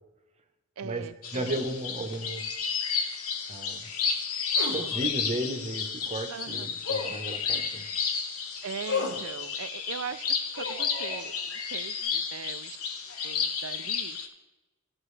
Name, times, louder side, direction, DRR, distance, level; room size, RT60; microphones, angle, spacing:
voice 1, 0.8-1.6 4.9-5.1 6.3-6.7 8.6-12.8 13.2-14.2, right 6 dB, 70° right, 14 dB, 0.5 m, -40 dB
sound 1, 1.2-14.3, left 6 dB, 90° left, 1.0 m, -32 dB
voice 2, 1.3-2.4 3.5-3.9 4.7-7.9, right 1 dB, 30° right, 6 dB, 1.0 m, -34 dB
sound 2, 4.5-4.8 6.8-7.2 8.8-9.2 10.5-11.2, left 4 dB, 55° left, 1.5 m, -32 dB
15.5 x 6.1 x 3.2 m, 1.1 s
head